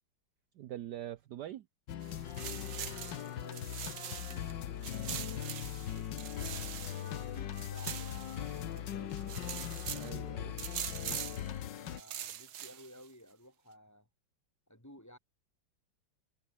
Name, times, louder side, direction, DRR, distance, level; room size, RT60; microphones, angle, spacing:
voice 1, 0.6-1.6 9.9-10.6, right 12 dB, 65° right, 1.2 m, -43 dB
sound 1, 1.9-12.0, left 10 dB, 65° left, 1.7 m, -40 dB
sound 2, 2.0-4.5 4.8-8.8 9.1-10.1 10.6-11.5 11.9-13.1, right 10 dB, 85° right, 2.1 m, -43 dB
voice 2, 2.7-6.4 6.9-9.8 11.8-14.1 14.7-15.2, equal, 10° left, 4.6 m, -56 dB
omnidirectional pair, 2.2 m